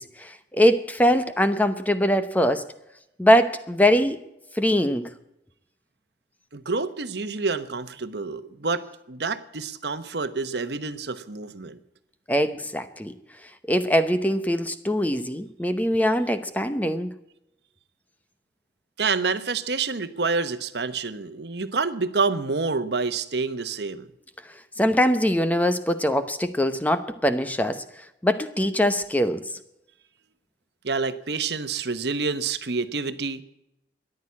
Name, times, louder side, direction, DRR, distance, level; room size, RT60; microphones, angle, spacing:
voice 1, 0.0-2.7 3.2-4.2 4.5-5.1 12.3-13.1 13.7-17.1 24.8-27.8 28.2-29.4, equal, 10° left, 0.8 m, -22 dB
voice 2, 6.5-11.8 19.0-24.1 30.8-33.4, right 4 dB, 70° right, 1.1 m, -28 dB
14.0 x 11.0 x 8.5 m
head